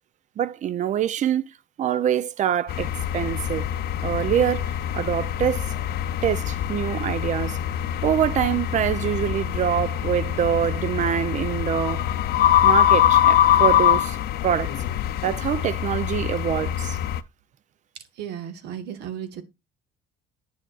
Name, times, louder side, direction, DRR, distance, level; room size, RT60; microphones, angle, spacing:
voice 1, 0.4-1.5 1.8-3.7 4.0-5.7 6.2-7.6 8.0-12.0 12.6-14.2 14.4-14.7 15.2-17.0, right 9 dB, 45° right, 0.5 m, -25 dB
sound 1, 2.7-17.2, left 11 dB, 65° left, 0.5 m, -23 dB
voice 2, 18.2-19.4, right 9 dB, 80° right, 1.3 m, -34 dB
9.6 x 6.7 x 2.3 m
cardioid pair, 110°, 17 cm